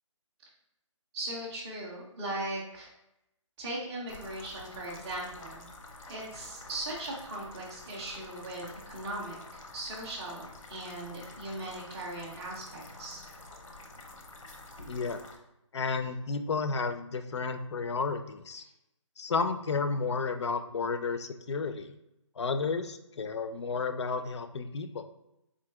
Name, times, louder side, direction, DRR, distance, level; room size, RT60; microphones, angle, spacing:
voice 1, 1.1-2.9 3.6-5.7 6.1-13.2, right 1 dB, 5° right, -7 dB, 0.3 m, -39 dB
sound 1, 4.1-15.4, left 2 dB, 85° left, 0.8 m, -48 dB
voice 2, 14.9-15.2 15.7-18.6 19.2-21.9 22.4-25.1, left 4 dB, 60° left, 9 dB, 0.4 m, -32 dB
3.8 x 2.7 x 3.5 m, 0.87 s
figure-of-eight pair, 155°, 16 cm